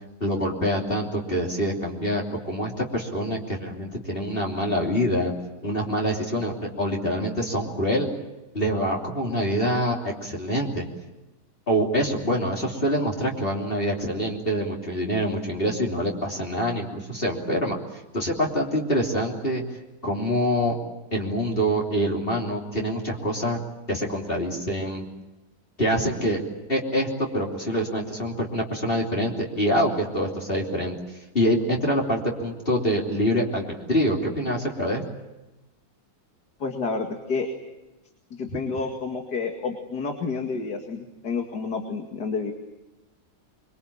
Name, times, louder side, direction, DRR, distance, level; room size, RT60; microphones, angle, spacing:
voice 1, 0.2-5.3 5.6-8.1 8.5-10.9 11.7-17.8 18.1-19.6 20.0-20.8 21.1-23.6 23.9-25.1 25.8-26.4 26.7-31.0 31.3-35.0, equal, 35° left, -1 dB, 3.5 m, -25 dB
voice 2, 36.6-37.5 38.3-42.5, left 4 dB, 80° left, 4 dB, 2.7 m, -29 dB
24.5 x 24.0 x 8.7 m, 1.0 s
omnidirectional pair, 1.7 m